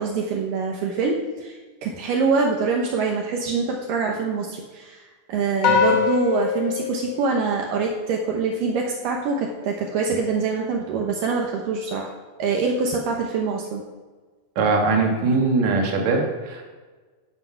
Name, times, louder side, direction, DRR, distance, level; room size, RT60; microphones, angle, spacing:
voice 1, 0.0-12.1 12.4-13.8, right 4 dB, 75° right, 1 dB, 2.6 m, -25 dB
sound 1, 5.6-8.2, left 8 dB, 65° left, 1.2 m, -24 dB
voice 2, 14.6-16.6, right 3 dB, 55° right, 1 dB, 2.8 m, -21 dB
12.0 x 7.8 x 5.7 m, 1.3 s
omnidirectional pair, 4.1 m